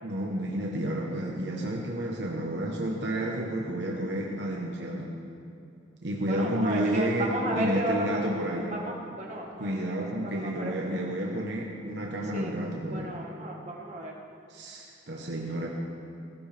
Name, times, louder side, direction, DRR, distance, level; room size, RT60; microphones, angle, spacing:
voice 1, 0.0-5.1 6.0-8.7 9.6-13.1 14.5-15.7, right 1 dB, 65° right, -1 dB, 1.2 m, -30 dB
voice 2, 6.2-8.2 8.7-9.9 10.2-11.0 12.3-12.5 12.9-14.1, right 1 dB, 40° right, -2 dB, 1.6 m, -34 dB
16.5 x 15.5 x 3.5 m, 2.6 s
head